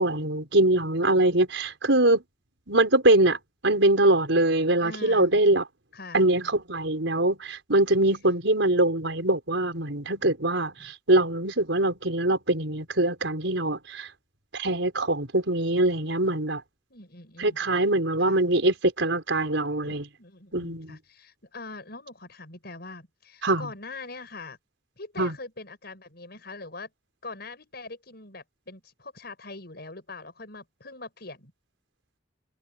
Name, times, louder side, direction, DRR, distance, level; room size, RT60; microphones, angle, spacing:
voice 1, 0.0-2.2 2.7-3.4 3.6-5.6 6.1-14.1 14.5-16.6 17.4-20.1 20.5-21.0 23.4-23.7 25.2-25.3, right 1 dB, 80° right, 4.6 m, -23 dB
voice 2, 4.8-5.3 5.9-6.2 10.8-10.9 16.9-17.6 18.2-18.4 19.8-24.6 25.0-26.9 27.2-31.5, left 3 dB, 55° left, 6.8 m, -42 dB
head